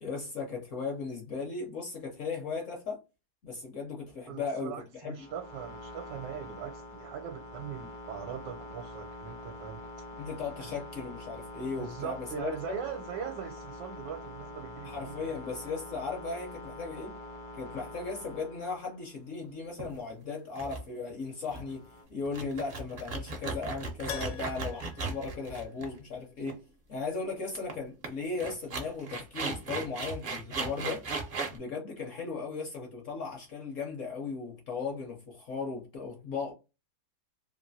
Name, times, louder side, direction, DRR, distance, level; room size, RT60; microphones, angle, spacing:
voice 1, 0.0-3.0 3.4-5.3 10.2-12.8 14.8-17.1 17.5-21.8 22.1-26.6 26.9-31.1 31.5-36.5, left 4 dB, 60° left, 0.8 m, -37 dB
voice 2, 4.3-9.8 10.6-10.7 11.7-15.3, right 8 dB, 80° right, 1.2 m, -41 dB
sound 1, 5.1-19.2 21.4-22.0, left 1 dB, 35° left, 0.5 m, -45 dB
sound 2, 19.8-20.1 20.5-20.8 21.1-21.2 21.5-21.8 22.2-26.1 26.4-26.5 27.7-27.8 28.0-28.1 28.4-31.6, right 3 dB, 60° right, 0.5 m, -36 dB
Keyboard (musical), 24.1-26.1 26.4-26.5 29.2-29.3 29.5-29.6, left 7 dB, 90° left, 1.4 m, -44 dB
3.1 x 2.5 x 2.6 m
omnidirectional pair, 1.9 m